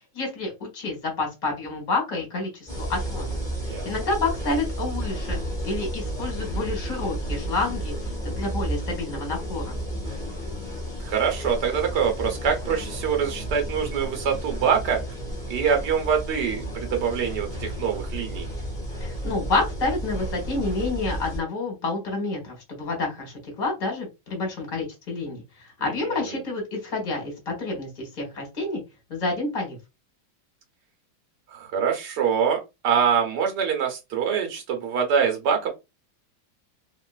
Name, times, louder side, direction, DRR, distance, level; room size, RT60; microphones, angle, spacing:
voice 1, 0.1-3.2 3.6-5.4 5.6-7.9 8.2-9.7 19.0-28.8 29.1-29.8, left 3 dB, 25° left, 1 dB, 1.3 m, -29 dB
sound 1, 2.7-21.4, right 1 dB, ahead, 1.0 m, -32 dB
voice 2, 11.0-15.0 15.5-18.5 26.3-26.4 31.5-35.7, right 7 dB, 60° right, 3 dB, 1.3 m, -24 dB
3.0 x 2.9 x 2.4 m, 0.24 s
omnidirectional pair, 2.3 m